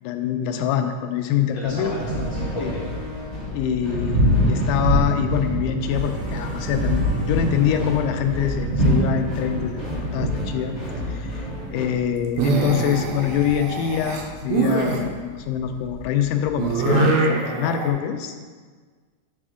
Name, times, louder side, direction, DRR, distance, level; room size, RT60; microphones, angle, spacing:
voice 1, 0.0-2.0 2.6-2.7 3.5-10.8 11.1-11.5 11.7-18.4, left 9 dB, 85° left, 6 dB, 2.0 m, -25 dB
voice 2, 1.5-2.8 3.2-3.3, left 1 dB, 70° left, -6 dB, 1.5 m, -34 dB
sound 1, 1.6-11.9, equal, 45° left, 0.5 m, -36 dB
Thunder, 1.6-16.9, equal, 50° right, 0.9 m, -26 dB
sound 2, 8.5-9.3 9.6-10.1 12.2-15.0 16.6-17.9, right 4 dB, 75° right, 1.8 m, -23 dB
8.8 x 3.4 x 3.7 m, 1.5 s
omnidirectional pair, 3.5 m